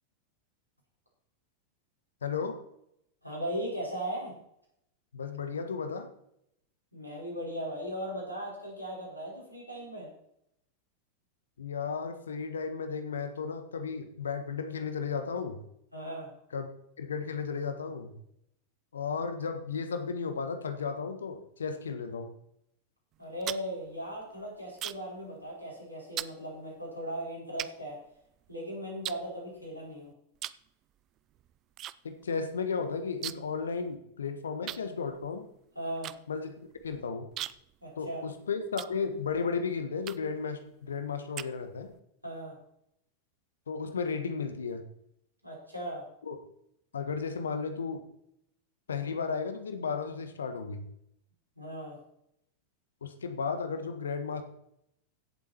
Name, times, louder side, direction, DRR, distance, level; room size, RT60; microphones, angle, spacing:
voice 1, 2.2-2.6 5.1-6.1 11.6-15.6 16.5-16.7 17.0-18.1 18.9-22.3 32.0-35.5 36.3-36.5 36.8-37.3 38.0-41.9 43.7-44.8 46.2-46.4 46.9-48.0 48.9-50.8 53.0-54.4, left 5 dB, 70° left, 8 dB, 1.4 m, -34 dB
voice 2, 3.2-4.3 6.9-10.1 15.9-16.3 23.2-28.0 28.5-30.1 35.8-36.1 37.8-38.2 42.2-42.6 45.4-46.0 51.6-52.0, equal, 90° right, -4 dB, 5.5 m, -38 dB
sound 1, 23.1-25.2 25.5-25.8 26.2-26.4 27.0-27.1 27.6-28.6 29.0-29.9 30.4-30.7 31.0-32.0 32.2-32.3 32.6-33.6 33.9-34.0 34.7-39.4 40.0-40.4 40.9-42.0, right 13 dB, 35° right, 0.5 m, -41 dB
16.0 x 7.7 x 4.5 m, 0.75 s
figure-of-eight pair, 90°, 0 cm